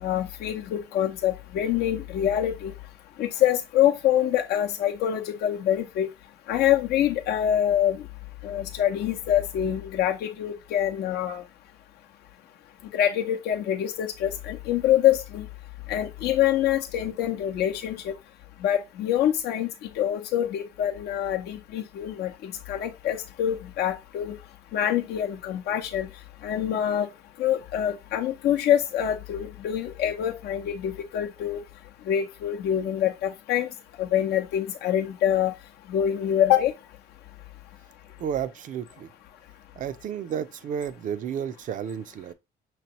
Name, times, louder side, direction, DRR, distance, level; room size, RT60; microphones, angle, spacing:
voice 1, 0.0-2.7 3.2-6.1 6.5-8.0 8.4-11.4 12.9-15.5 15.9-18.1 18.6-19.7 20.0-24.3 24.7-26.1 26.4-27.1 27.4-31.6 32.1-33.7 34.0-35.5 35.9-36.7, left 10 dB, 75° left, 0.7 m, -25 dB
voice 2, 38.2-39.1 39.8-42.3, right 8 dB, 50° right, 0.5 m, -32 dB
6.0 x 3.0 x 2.9 m
cardioid pair, 110°, 17 cm